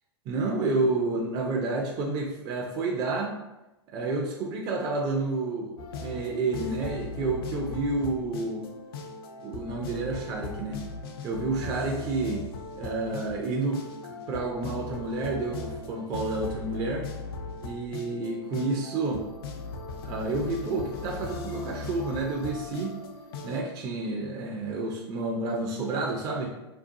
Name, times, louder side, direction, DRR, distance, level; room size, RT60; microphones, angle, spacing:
voice 1, 0.3-3.4 3.9-8.7 9.4-10.8 11.2-12.5 12.8-17.1 17.6-19.2 20.0-23.0 23.4-26.5, right 3 dB, 30° right, 0 dB, 0.4 m, -30 dB
sound 1, 5.8-23.6, left 4 dB, 60° left, 0.4 m, -39 dB
2.6 x 2.2 x 2.6 m, 0.98 s
figure-of-eight pair, 95°, 14 cm